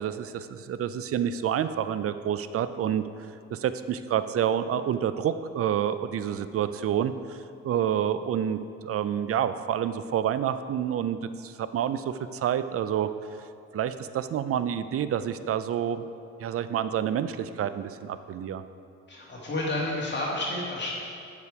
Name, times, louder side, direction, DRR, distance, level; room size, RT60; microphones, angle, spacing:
voice 1, 0.0-3.1 3.5-7.4 7.6-13.1 13.7-16.1 16.4-18.6, right 9 dB, 50° right, 12 dB, 0.5 m, -28 dB
voice 2, 19.1-20.9, left 1 dB, 35° left, -5 dB, 2.1 m, -30 dB
8.2 x 6.9 x 4.8 m, 2.4 s
cardioid pair, 90°, 30 cm